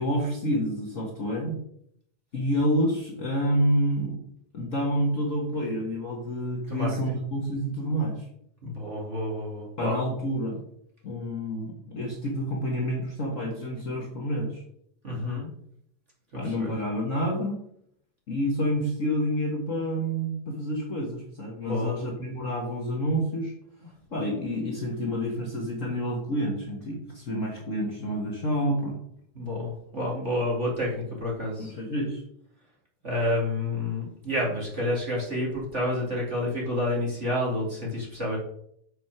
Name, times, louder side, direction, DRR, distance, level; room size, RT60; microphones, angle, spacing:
voice 1, 0.0-1.6 2.3-4.2 4.5-8.3 9.8-10.6 11.0-14.6 16.3-17.6 18.3-23.5 24.1-29.0 31.6-32.2, equal, 65° left, -2 dB, 0.7 m, -28 dB
voice 2, 6.7-7.2 8.6-10.0 15.0-15.5 16.3-16.8 21.6-22.0 29.3-31.7 33.0-38.4, left 1 dB, 25° right, -3 dB, 2.1 m, -29 dB
7.0 x 6.1 x 6.0 m, 0.71 s
omnidirectional pair, 3.8 m